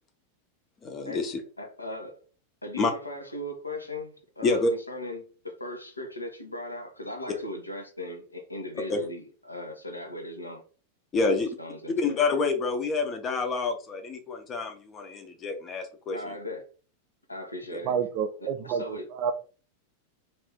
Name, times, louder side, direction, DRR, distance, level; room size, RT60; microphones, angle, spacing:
voice 1, 0.8-1.4 2.8-2.9 4.4-4.7 8.9-9.0 11.1-11.5 12.0-16.4 17.7-17.8, left 3 dB, 25° left, 0.7 m, -28 dB
voice 2, 1.6-2.2 2.6-4.6 4.9-10.6 11.2-12.2 16.1-16.6 17.3-17.9 18.4-19.1, left 1 dB, 80° left, 0.7 m, -38 dB
voice 3, 17.8-18.8 19.1-19.3, right 7 dB, 40° right, 0.4 m, -28 dB
2.6 x 2.6 x 3.4 m
figure-of-eight pair, 90°, 0 cm